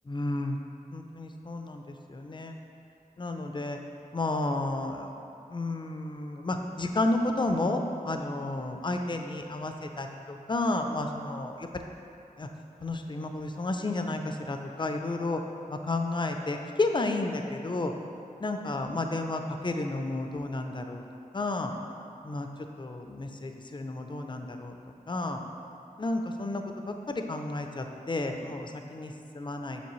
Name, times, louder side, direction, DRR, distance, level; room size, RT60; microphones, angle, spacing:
voice 1, 0.1-0.6 0.9-2.5 3.2-3.8 4.1-5.1 5.5-11.7 12.4-12.5 12.8-15.4 15.7-17.9 18.4-21.0 21.3-21.7 22.2-22.5 22.8-24.8 25.1-25.4 26.0-29.8, left 2 dB, 35° left, 4 dB, 0.5 m, -32 dB
7.1 x 5.6 x 3.1 m, 2.6 s
wide cardioid pair, 55°, 14 cm